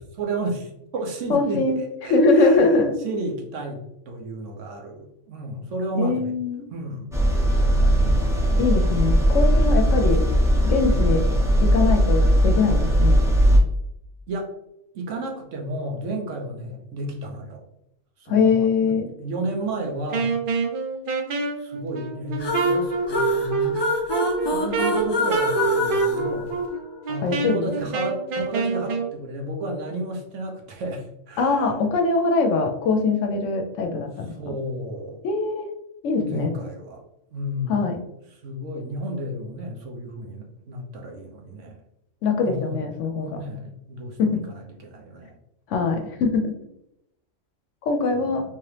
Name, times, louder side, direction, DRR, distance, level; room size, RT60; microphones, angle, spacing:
voice 1, 0.1-1.7 2.0-6.4 6.7-7.2 7.5-8.3 14.3-14.5 14.9-17.6 18.2-20.4 21.6-23.8 24.4-26.6 27.1-31.7 34.4-35.2 36.2-37.0 37.3-37.9 38.4-41.8 42.4-45.4 45.8-46.0 48.1-48.4, right 1 dB, 75° right, 1 dB, 1.1 m, -32 dB
voice 2, 1.3-1.8 2.1-2.9 5.9-6.7 8.6-10.2 10.6-11.2 11.6-13.2 18.3-19.1 27.2-27.6 31.4-34.3 35.2-35.7 36.0-36.5 37.7-38.0 42.2-43.4 44.2-44.4 45.7-46.5 47.9-48.4, left 3 dB, 80° left, 4 dB, 1.0 m, -22 dB
sound 1, 7.1-13.6, equal, 5° right, 0.6 m, -19 dB
Wind instrument woodwind instrument, 20.1-29.1, right 4 dB, 55° right, 0.6 m, -26 dB
sound 2, 22.4-27.1, left 2 dB, 45° left, 0.3 m, -27 dB
3.4 x 2.9 x 3.2 m, 0.81 s
omnidirectional pair, 1.3 m